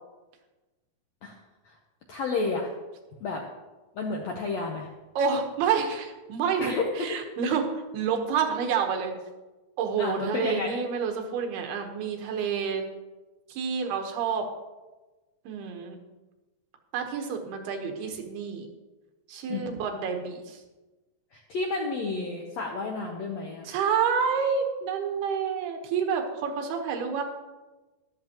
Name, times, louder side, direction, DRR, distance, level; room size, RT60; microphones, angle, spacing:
voice 1, 2.1-2.7 3.2-3.4 3.9-4.9 6.6-7.2 10.0-10.7 19.5-19.7 21.3-23.7, left 3 dB, 75° left, 0 dB, 1.5 m, -31 dB
voice 2, 5.2-9.1 9.8-12.8 13.5-14.5 15.5-16.0 16.9-18.7 19.3-20.6 23.6-27.2, right 6 dB, 90° right, 3 dB, 3.3 m, -28 dB
13.5 x 12.0 x 3.0 m, 1.2 s
omnidirectional pair, 4.4 m